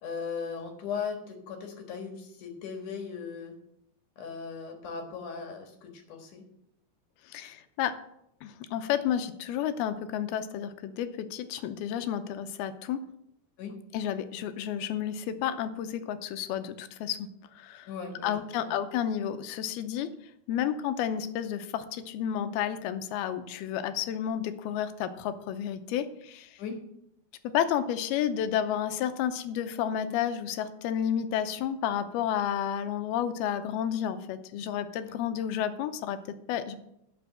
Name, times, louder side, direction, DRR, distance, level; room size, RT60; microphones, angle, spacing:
voice 1, 0.0-3.6 4.2-6.4 13.6-13.7 17.9-18.3 18.6-18.7 26.6-26.8 35.1-35.2, left 6 dB, 60° left, 3 dB, 2.7 m, -38 dB
voice 2, 7.3-8.0 8.4-13.0 13.9-17.9 18.2-20.1 20.5-26.6 27.4-36.8, left 9 dB, 80° left, 10 dB, 2.6 m, -31 dB
12.0 x 6.1 x 7.4 m, 0.79 s
omnidirectional pair, 4.6 m